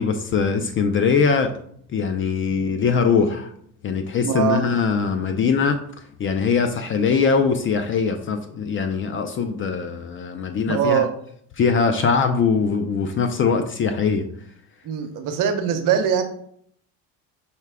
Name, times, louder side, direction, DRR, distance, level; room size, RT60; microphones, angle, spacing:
voice 1, 0.0-1.5 1.9-3.5 3.8-5.8 6.2-11.0 11.6-14.3, left 5 dB, 30° left, 7 dB, 0.4 m, -21 dB
voice 2, 2.5-2.8 4.2-4.7 10.7-11.1 14.8-16.2, right 8 dB, 50° right, 7 dB, 0.8 m, -22 dB
5.6 x 2.2 x 3.3 m, 0.65 s
supercardioid pair, 85°, 41 cm